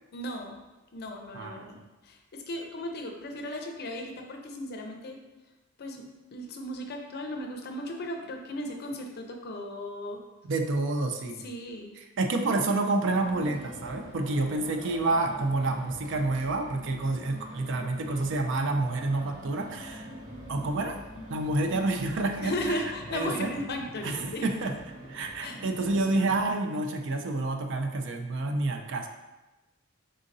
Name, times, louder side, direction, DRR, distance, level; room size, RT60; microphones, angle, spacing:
voice 1, 0.1-0.6 0.9-1.8 2.0-5.2 5.8-10.2 11.4-11.9 22.4-24.5 25.4-25.6, left 1 dB, 50° left, 3 dB, 0.5 m, -36 dB
voice 2, 1.3-1.9 10.5-11.4 12.0-20.1 20.5-21.0 21.3-22.6 23.1-23.5 24.0-24.7 25.1-29.1, right 2 dB, 60° right, 5 dB, 0.4 m, -29 dB
sound 1, 13.0-26.4, equal, 40° right, 0.8 m, -44 dB
4.0 x 3.7 x 2.6 m, 1.1 s
head